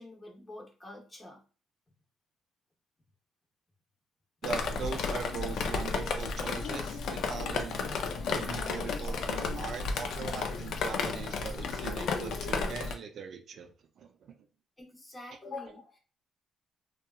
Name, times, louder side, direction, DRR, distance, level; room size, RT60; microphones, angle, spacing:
voice 1, 0.0-1.4 14.8-16.0, left 3 dB, 20° left, 0 dB, 0.8 m, -45 dB
Drip, 4.4-12.9, left 4 dB, 75° left, 0.4 m, -33 dB
voice 2, 4.4-7.9 8.3-14.4, right 7 dB, 65° right, 6 dB, 0.4 m, -41 dB
2.7 x 2.2 x 2.3 m, 0.36 s
cardioid pair, 90°, 0 cm